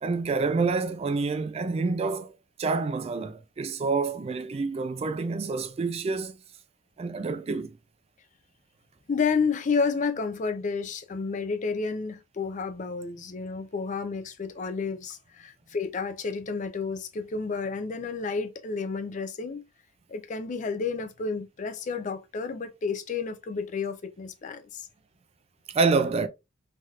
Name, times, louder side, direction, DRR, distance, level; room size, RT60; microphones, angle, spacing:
voice 1, 0.0-2.3 2.6-6.4 7.0-7.8 25.7-26.3, right 4 dB, 30° right, 0.3 m, -27 dB
voice 2, 9.1-19.6 20.1-24.9, left 5 dB, 40° left, 0.4 m, -31 dB
3.3 x 2.8 x 2.3 m
head